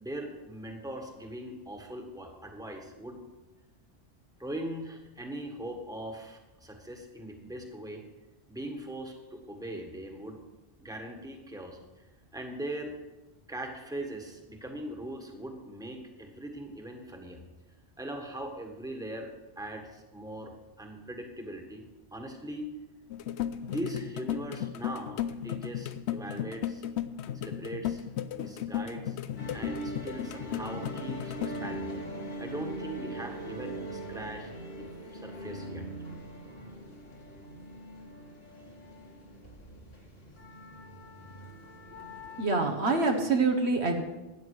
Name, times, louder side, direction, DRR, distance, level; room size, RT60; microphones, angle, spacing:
voice 1, 0.0-3.2 4.4-8.0 8.5-10.4 10.8-12.0 12.3-13.0 13.5-17.4 18.0-21.8 22.1-22.7 23.7-26.8 27.3-28.0 28.3-29.2 29.5-31.9 32.4-35.8, right 1 dB, 5° right, 3 dB, 1.5 m, -40 dB
sound 1, 23.1-31.8, left 10 dB, 75° left, 0.9 m, -35 dB
sound 2, 29.4-42.5, right 1 dB, 60° left, 2.3 m, -41 dB
voice 2, 42.4-44.0, right 3 dB, 70° right, 3 dB, 1.5 m, -26 dB
14.0 x 9.1 x 4.8 m, 1.1 s
omnidirectional pair, 1.2 m